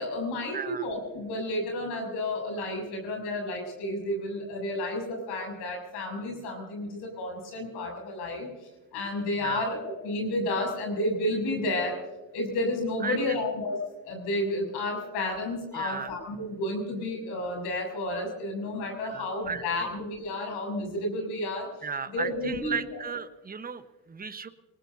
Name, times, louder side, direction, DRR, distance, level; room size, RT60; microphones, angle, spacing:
voice 1, 0.0-8.5 8.9-9.8 10.0-12.0 12.3-21.7 22.1-23.0, left 1 dB, 75° left, 2 dB, 7.1 m, -31 dB
voice 2, 0.5-0.9 9.4-9.7 13.0-13.4 15.7-16.1 19.0-19.9 21.8-24.5, right 5 dB, 20° right, 10 dB, 1.2 m, -35 dB
24.0 x 19.5 x 2.8 m, 1.2 s
supercardioid pair, 80°, 40 cm